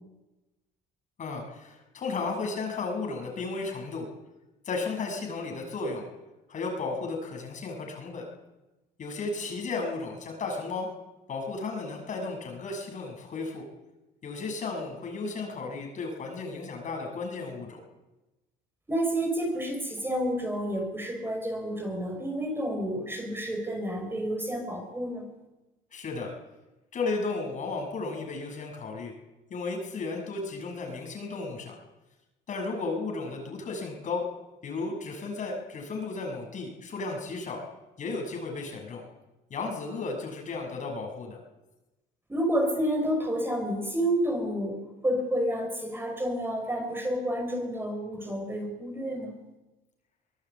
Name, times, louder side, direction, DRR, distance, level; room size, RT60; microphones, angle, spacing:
voice 1, 1.2-4.1 4.6-6.0 6.5-8.2 9.0-10.9 11.3-13.6 14.2-17.8 25.9-26.3 26.9-29.1 29.5-31.7 32.5-34.2 34.6-37.6 38.0-39.0 39.5-41.4, left 3 dB, 50° left, 2 dB, 6.6 m, -34 dB
voice 2, 18.9-25.3 42.3-49.3, equal, 15° right, 3 dB, 6.0 m, -30 dB
24.0 x 17.5 x 8.5 m, 1.1 s
cardioid pair, 110°, 17 cm